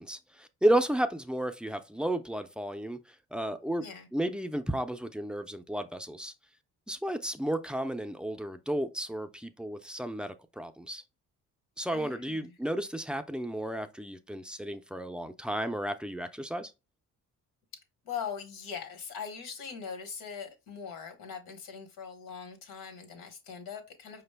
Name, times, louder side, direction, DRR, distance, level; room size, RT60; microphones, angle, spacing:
voice 1, 0.0-3.0 3.3-3.8 4.1-6.3 6.9-11.0 11.8-16.7, right 1 dB, 5° right, 0.4 m, -32 dB
voice 2, 11.9-12.6 18.0-24.2, left 7 dB, 90° left, 1.0 m, -41 dB
5.0 x 2.2 x 3.3 m
cardioid pair, 75°, 34 cm